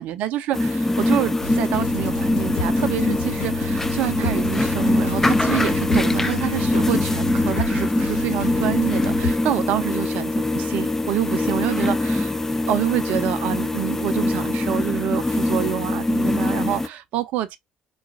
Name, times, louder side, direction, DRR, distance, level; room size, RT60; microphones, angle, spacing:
voice 1, 0.0-12.4 12.7-17.6, right 12 dB, 60° right, 0.5 m, -27 dB
sound 1, 0.5-16.9, left 2 dB, 15° left, 0.4 m, -23 dB
sound 2, 1.4-9.3, left 3 dB, 75° left, 1.3 m, -31 dB
3.9 x 2.2 x 2.5 m
hypercardioid pair, 55°, 3 cm